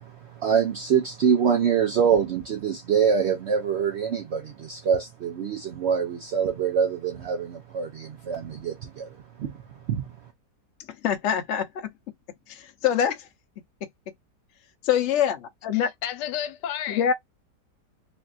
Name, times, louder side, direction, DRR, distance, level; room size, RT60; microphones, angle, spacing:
voice 1, 0.0-9.5 9.9-10.1, right 7 dB, 75° right, 0.6 m, -25 dB
voice 2, 11.0-11.9 12.5-13.3 14.8-15.9 16.9-17.1, left 8 dB, 55° left, 0.8 m, -24 dB
voice 3, 15.7-17.1, left 10 dB, 85° left, 1.3 m, -32 dB
3.3 x 2.4 x 2.4 m
omnidirectional pair, 1.8 m